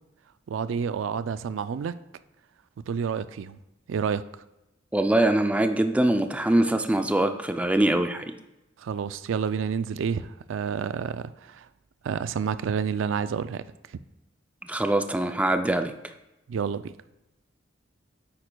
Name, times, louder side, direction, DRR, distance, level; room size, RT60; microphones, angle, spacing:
voice 1, 0.5-2.0 2.9-3.6 3.9-4.2 8.8-11.7 12.0-13.6 16.5-16.9, right 6 dB, 85° right, 0.3 m, -29 dB
voice 2, 4.9-8.3 14.7-15.9, right 1 dB, 5° right, 0.4 m, -23 dB
9.1 x 8.8 x 2.3 m
head